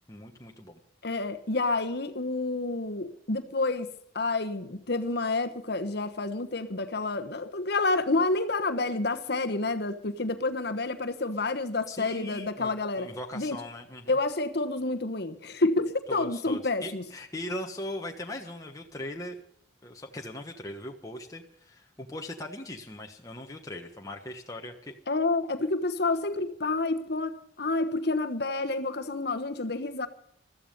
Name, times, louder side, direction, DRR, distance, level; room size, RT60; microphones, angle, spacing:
voice 1, 0.1-0.8 11.9-14.2 16.1-19.4 19.8-24.9, left 1 dB, 20° left, 1.3 m, -39 dB
voice 2, 1.0-3.9 4.1-13.1 13.3-13.6 14.1-17.0 25.1-30.1, left 3 dB, 60° left, 1.2 m, -29 dB
15.0 x 14.0 x 5.3 m
head